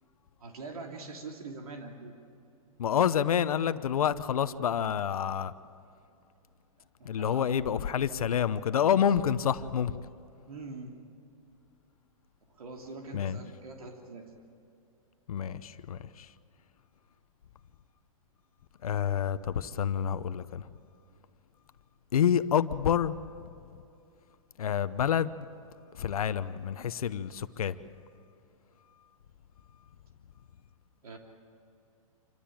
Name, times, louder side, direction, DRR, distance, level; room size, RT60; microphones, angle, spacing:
voice 1, 0.4-2.2 7.0-7.6 10.5-11.0 12.5-14.3 31.0-31.2, right 3 dB, 80° right, 2 dB, 3.0 m, -43 dB
voice 2, 2.8-5.5 7.0-9.9 13.1-13.4 15.3-16.3 18.8-20.7 22.1-23.2 24.6-25.4 25.9-27.8, left 8 dB, 80° left, 14 dB, 0.9 m, -28 dB
27.0 x 16.0 x 8.8 m, 2.6 s
hypercardioid pair, 125°, 18 cm